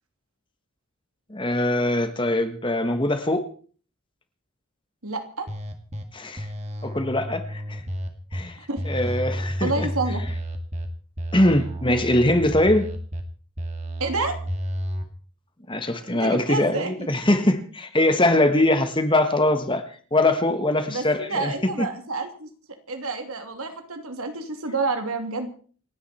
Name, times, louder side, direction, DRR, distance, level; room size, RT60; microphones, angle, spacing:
voice 1, 1.3-3.5 6.1-6.5 6.8-7.8 8.3-8.6 8.8-9.9 11.3-12.9 15.7-19.8 20.1-21.5 21.8-21.9, left 1 dB, 20° left, 8 dB, 1.5 m, -22 dB
voice 2, 5.0-5.5 8.7-9.2 9.6-10.2 14.0-14.4 16.1-16.9 20.8-22.5 22.9-25.5, right 3 dB, 75° right, 5 dB, 2.9 m, -29 dB
sound 1, 5.5-6.0 6.4-8.4 8.8-10.9 11.2-13.2 13.6-15.0, equal, 30° right, 2.1 m, -31 dB
28.5 x 9.8 x 4.4 m, 0.43 s
head